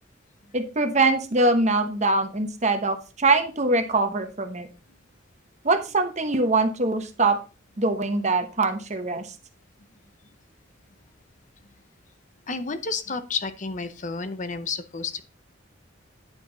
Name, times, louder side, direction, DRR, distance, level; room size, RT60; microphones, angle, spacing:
voice 1, 0.5-4.7 5.6-7.4 7.8-9.3, right 2 dB, 35° right, 1.0 m, -23 dB
voice 2, 12.5-15.2, left 4 dB, 40° left, 0.7 m, -31 dB
9.9 x 5.9 x 3.9 m
head